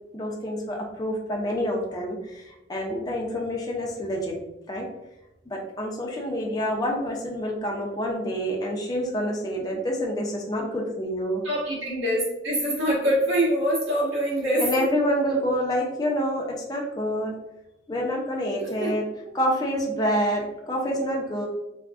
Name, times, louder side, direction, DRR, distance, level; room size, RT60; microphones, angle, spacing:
voice 1, 0.1-4.3 4.7-4.9 5.5-11.4 14.6-17.3 17.9-19.0 19.3-21.5, equal, 20° left, -1 dB, 0.4 m, -27 dB
voice 2, 11.4-14.8 18.8-18.9, equal, 75° right, -6 dB, 1.3 m, -24 dB
3.4 x 2.1 x 2.3 m, 0.93 s
head